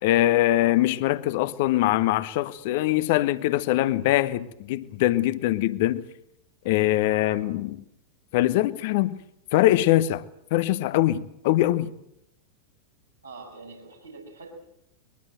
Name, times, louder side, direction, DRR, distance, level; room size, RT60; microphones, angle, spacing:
voice 1, 0.0-6.0 6.6-7.8 8.3-9.2 9.5-10.2 10.5-11.9, left 15 dB, 50° left, 1.2 m, -22 dB
voice 2, 13.2-14.5, right 3 dB, 85° right, 7.1 m, -44 dB
22.5 x 22.0 x 7.7 m
figure-of-eight pair, 90°, 0 cm